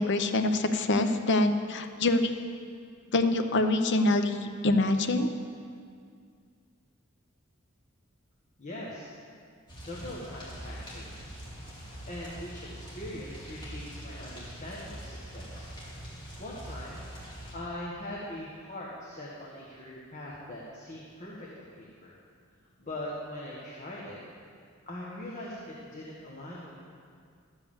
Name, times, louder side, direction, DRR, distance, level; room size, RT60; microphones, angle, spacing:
voice 1, 0.0-2.3 3.1-5.3, left 2 dB, 60° left, 7 dB, 0.7 m, -25 dB
voice 2, 8.6-9.1 9.8-11.2 12.1-15.7 16.4-22.1 22.8-24.2 24.9-26.8, left 1 dB, 35° left, -5 dB, 1.4 m, -41 dB
sound 1, 9.7-17.5, equal, 20° left, 2.5 m, -43 dB
13.0 x 5.3 x 7.1 m, 2.2 s
head